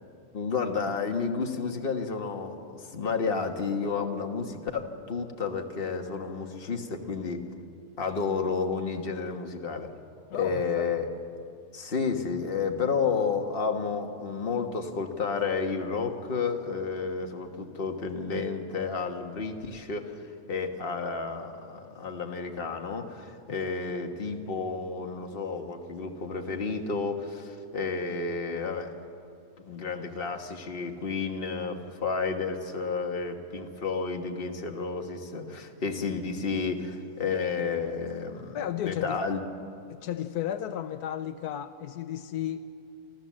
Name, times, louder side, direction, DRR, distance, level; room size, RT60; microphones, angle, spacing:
voice 1, 0.3-7.4 8.0-9.9 10.3-11.1 11.7-20.2 20.5-28.9 29.7-38.6 38.8-39.5, left 5 dB, 40° left, 4 dB, 1.5 m, -31 dB
voice 2, 10.3-10.9 23.6-23.7 38.5-39.2 39.9-42.6, left 11 dB, 80° left, 11 dB, 1.2 m, -34 dB
27.0 x 13.5 x 7.5 m, 2.6 s
omnidirectional pair, 1.6 m